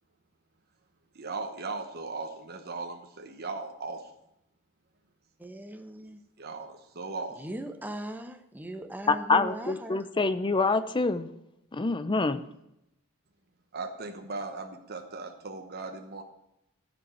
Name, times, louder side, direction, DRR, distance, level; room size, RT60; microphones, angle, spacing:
voice 1, 1.1-4.1 6.4-7.4 13.7-16.2, right 3 dB, 50° right, 4 dB, 1.1 m, -38 dB
voice 2, 5.4-6.2 7.3-10.1, right 1 dB, 10° right, 7 dB, 1.0 m, -39 dB
voice 3, 9.1-11.3 11.7-12.4, left 3 dB, 25° left, 13 dB, 0.6 m, -26 dB
14.0 x 5.3 x 8.4 m, 0.85 s
head